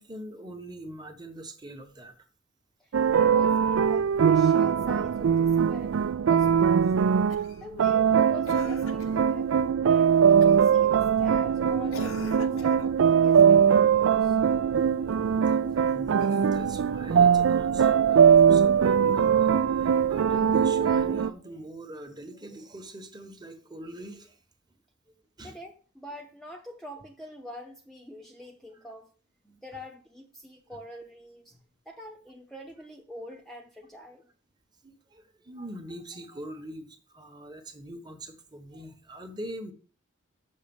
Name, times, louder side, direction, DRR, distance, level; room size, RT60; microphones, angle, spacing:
voice 1, 0.0-2.2 6.6-7.2 15.5-24.4 25.4-25.5 34.8-39.7, right 1 dB, 20° right, 1.1 m, -43 dB
voice 2, 2.8-6.0 6.3-7.1 7.6-9.5 9.8-14.4 25.4-29.1 29.4-34.3, left 1 dB, ahead, 0.7 m, -45 dB
sound 1, 2.9-21.3, right 7 dB, 75° right, 0.4 m, -21 dB
Cough, 7.3-7.7 8.5-9.2 10.4-10.7 11.9-13.0 16.1-16.9 18.3-18.4, left 4 dB, 85° left, 1.0 m, -44 dB
6.5 x 6.4 x 7.0 m
head